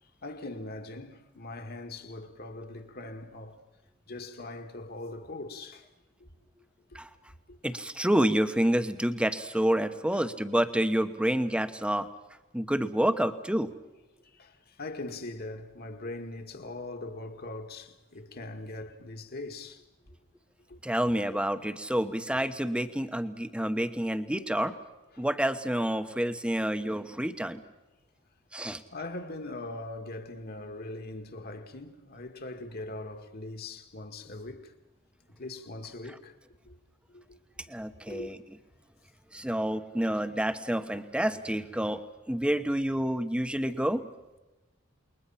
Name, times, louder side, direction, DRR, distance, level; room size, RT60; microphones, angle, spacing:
voice 1, 0.2-3.6 4.1-5.9 6.2-6.3 6.9-7.0 10.1-10.3 14.3-19.8 20.7-20.8 25.1-25.2 28.9-34.7 35.4-36.3 36.6-36.8 37.1-37.2 38.1-38.3, left 2 dB, 50° left, 2.0 m, -41 dB
voice 2, 7.6-12.1 12.5-13.7 20.8-24.7 25.2-27.6 28.5-28.8 37.7-38.3 39.3-42.0 42.3-44.0, right 1 dB, 5° right, 1.1 m, -28 dB
28.5 x 21.5 x 5.8 m
head